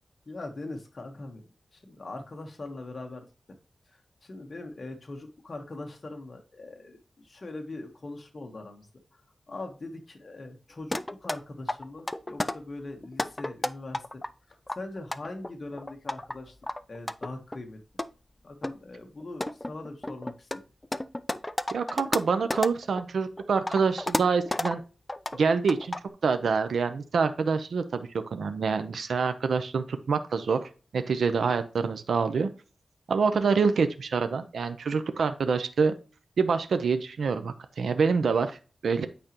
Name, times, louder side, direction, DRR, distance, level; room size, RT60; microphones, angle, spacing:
voice 1, 0.3-3.2 3.9-9.2 9.5-14.2 14.5-16.6 16.9-17.8 18.4-20.5, left 2 dB, 40° left, 3 dB, 1.2 m, -41 dB
sound 1, 10.9-11.4 11.7-12.6 13.0-14.3 14.7-16.3 16.6-17.6 18.0-18.1 18.6-18.8 19.2-23.0 23.4-24.8 25.1-25.4 25.7-26.1, left 1 dB, 20° left, 0.4 m, -31 dB
voice 2, 21.7-24.8 25.3-26.0 26.2-32.5 33.1-35.9 36.4-39.1, right 5 dB, 85° right, 9 dB, 0.7 m, -26 dB
8.9 x 5.1 x 3.0 m, 0.35 s
wide cardioid pair, 105°, 0 cm